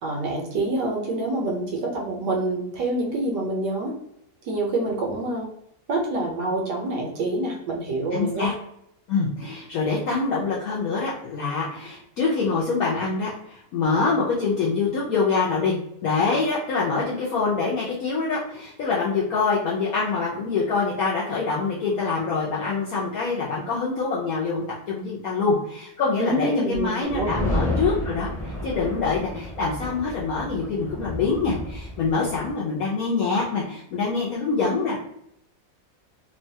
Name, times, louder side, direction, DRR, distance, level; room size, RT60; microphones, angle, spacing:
voice 1, 0.0-3.9 4.4-5.5 5.9-8.5 26.2-27.3, right 2 dB, 70° right, 0 dB, 1.1 m, -26 dB
voice 2, 8.1-8.5 9.1-15.8 16.0-35.0, left 4 dB, 75° left, -5 dB, 0.8 m, -25 dB
sound 1, 27.1-32.5, left 1 dB, 5° left, 0.4 m, -31 dB
3.0 x 2.2 x 2.6 m, 0.75 s
omnidirectional pair, 2.0 m